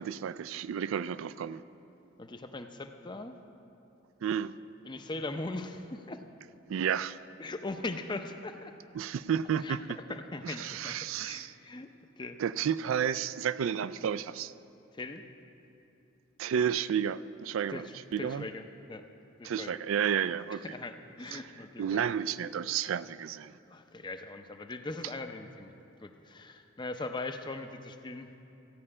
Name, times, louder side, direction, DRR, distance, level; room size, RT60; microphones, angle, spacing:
voice 1, 0.0-1.6 4.2-4.5 6.7-7.2 8.9-9.8 10.4-11.5 12.4-14.5 16.4-17.9 18.1-18.4 19.4-20.6 21.3-21.4 21.8-23.5, right 8 dB, 70° right, 16 dB, 0.3 m, -31 dB
voice 2, 2.2-3.4 4.8-6.2 7.4-8.7 9.6-9.8 10.1-11.9 12.2-12.4 14.9-15.2 17.7-19.0 19.4-19.8 20.6-22.1 22.8-23.0 23.7-25.7 26.0-28.4, left 2 dB, 20° left, 7 dB, 0.5 m, -40 dB
14.5 x 5.5 x 8.6 m, 2.8 s
head